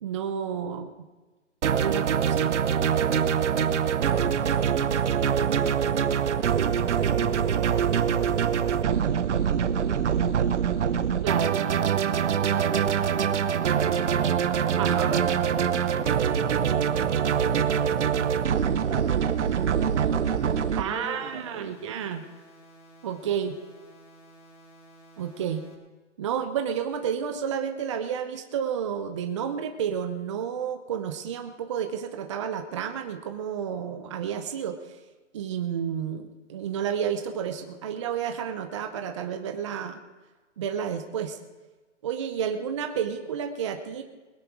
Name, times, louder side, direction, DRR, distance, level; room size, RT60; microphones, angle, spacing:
voice 1, 0.0-0.9 1.7-2.6 11.2-11.6 14.8-15.2 20.8-22.2 23.0-23.6 25.2-25.6 26.2-34.8 35.3-40.0 40.6-41.4 42.0-44.0, right 8 dB, 25° right, 6 dB, 0.7 m, -31 dB
sound 1, 1.6-20.8, right 8 dB, 70° right, 0.9 m, -24 dB
voice 2, 6.7-14.4 14.8-18.0 18.8-21.7, right 4 dB, 90° right, 2 dB, 2.8 m, -41 dB
sound 2, 16.7-25.7, right 1 dB, 30° left, 2.6 m, -53 dB
21.0 x 10.0 x 4.7 m, 1.2 s
hypercardioid pair, 155°, 36 cm